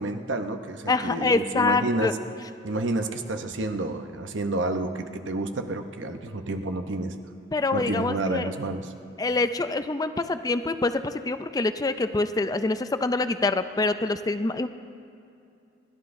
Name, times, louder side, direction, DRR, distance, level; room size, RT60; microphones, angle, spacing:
voice 1, 0.0-2.2 2.6-7.1 7.7-8.9, right 2 dB, 85° right, 6 dB, 0.8 m, -29 dB
voice 2, 0.9-2.1 7.5-8.5 9.2-14.7, left 3 dB, 20° left, 10 dB, 0.4 m, -25 dB
28.5 x 11.5 x 2.6 m, 2.6 s
head